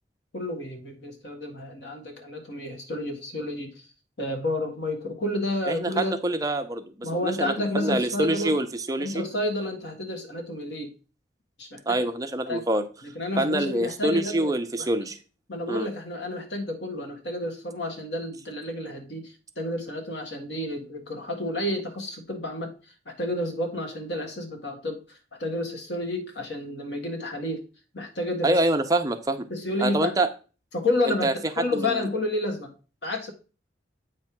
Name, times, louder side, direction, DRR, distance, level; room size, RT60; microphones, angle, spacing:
voice 1, 0.3-3.9 4.2-6.2 7.0-8.6 9.0-10.9 11.6-12.0 12.5-12.6 13.0-14.5 14.8-14.9 15.5-27.6 27.9-28.6 29.5-30.1 30.7-32.7 33.0-33.3, left 1 dB, 75° left, 4 dB, 1.7 m, -30 dB
voice 2, 5.7-9.2 11.9-12.8 13.4-15.2 15.7-15.9 28.4-29.5 29.8-30.3 31.1-31.9, right 1 dB, 20° right, 7 dB, 0.6 m, -26 dB
8.4 x 3.3 x 5.9 m, 0.35 s
head